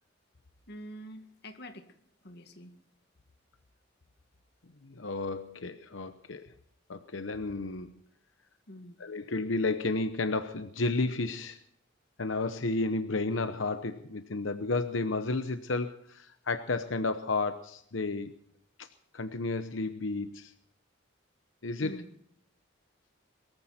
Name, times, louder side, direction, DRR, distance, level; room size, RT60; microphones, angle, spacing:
voice 1, 0.7-1.9 2.2-2.7 8.7-9.0 21.8-22.1, equal, 60° left, 7 dB, 2.2 m, -46 dB
voice 2, 4.8-6.5 6.9-7.9 9.0-11.6 12.2-18.3 18.8-18.9 19.1-20.5 21.6-22.0, left 3 dB, 90° left, 9 dB, 0.9 m, -32 dB
22.5 x 14.5 x 4.3 m, 0.67 s
head